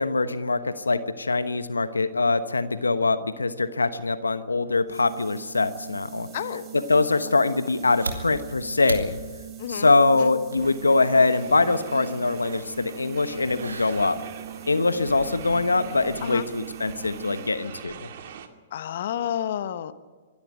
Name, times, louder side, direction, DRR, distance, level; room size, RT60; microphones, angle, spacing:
voice 1, 0.0-6.3 6.7-9.2 9.7-14.2 14.7-18.1, left 3 dB, 90° left, 12 dB, 1.1 m, -23 dB
sound 1, 4.9-17.8, right 11 dB, 25° right, 3.5 m, -42 dB
voice 2, 6.3-6.6 9.6-10.3 16.2-16.5 18.7-19.9, left 10 dB, 60° left, 12 dB, 1.1 m, -30 dB
sound 2, 7.6-16.8, right 2 dB, 85° right, 3.0 m, -41 dB
sound 3, 10.6-18.5, right 7 dB, 55° right, 2.2 m, -42 dB
24.5 x 12.0 x 9.6 m, 1.4 s
hypercardioid pair, 115°, 0 cm